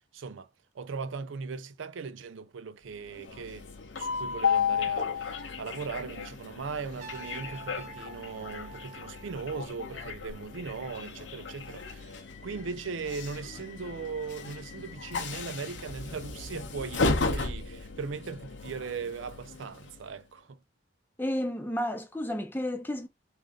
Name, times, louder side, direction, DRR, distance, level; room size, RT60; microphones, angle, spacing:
voice 1, 0.1-3.7 4.0-20.6, right 5 dB, 75° right, 0.4 m, -39 dB
Train, 2.9-20.2, left 5 dB, 65° left, 0.8 m, -34 dB
Trumpet, 7.0-10.0, right 5 dB, 35° right, 1.1 m, -48 dB
voice 2, 21.2-23.1, left 1 dB, 10° left, 0.6 m, -31 dB
3.7 x 2.6 x 3.5 m
head